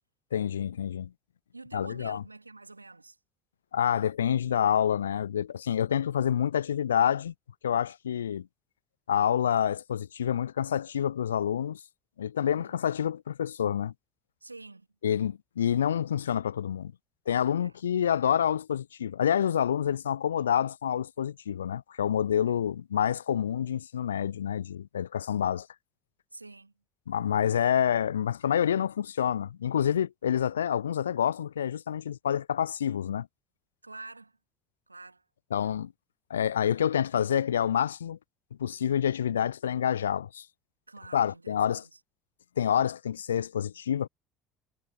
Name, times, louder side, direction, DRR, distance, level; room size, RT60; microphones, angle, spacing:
voice 1, 0.3-1.1 1.7-2.2 3.7-7.3 7.6-8.5 9.1-11.8 12.2-13.9 15.0-16.9 17.3-25.7 27.1-33.3 35.5-35.9 36.3-38.2 38.6-40.5 41.1-41.8 42.6-44.1, left 9 dB, 80° left, 0.3 m, -27 dB
voice 2, 1.5-3.2 12.4-12.8 14.4-14.9 17.6-17.7 22.5-22.6 26.3-26.7 33.8-34.4 34.9-35.2 35.6-35.7 40.9-42.0, right 3 dB, 90° right, 2.1 m, -47 dB
figure-of-eight pair, 60°, 0 cm